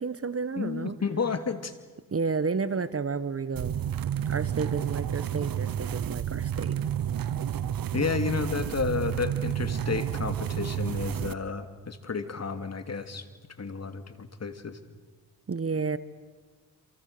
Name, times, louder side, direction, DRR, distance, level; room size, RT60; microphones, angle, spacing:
voice 1, 0.0-1.0 2.1-3.8 4.3-6.8 15.5-16.0, right 5 dB, 40° right, 15 dB, 1.3 m, -31 dB
voice 2, 0.6-1.7 7.9-13.3 13.6-14.8, left 5 dB, 45° left, 8 dB, 2.7 m, -31 dB
sound 1, 3.5-11.3, right 10 dB, 65° right, 0.9 m, -30 dB
28.0 x 28.0 x 6.9 m, 1.4 s
cardioid pair, 70°, 36 cm